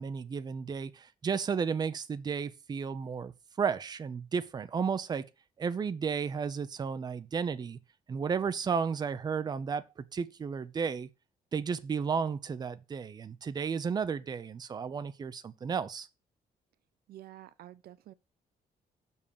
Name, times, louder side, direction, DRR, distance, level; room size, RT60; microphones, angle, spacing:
voice 1, 0.0-3.3 3.6-5.3 5.6-7.8 8.1-11.1 11.5-16.1, right 6 dB, 25° right, 0.6 m, -33 dB
voice 2, 17.1-18.1, right 13 dB, 85° right, 0.6 m, -49 dB
6.3 x 5.5 x 6.9 m
cardioid pair, 165°, 16 cm